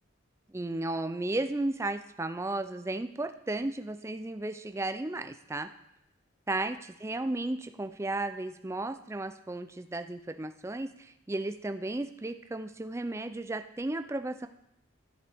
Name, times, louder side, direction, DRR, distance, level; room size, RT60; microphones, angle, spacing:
voice 1, 0.5-5.7 6.5-14.5, right 2 dB, 15° right, 9 dB, 0.4 m, -34 dB
13.5 x 7.7 x 3.5 m, 0.85 s
head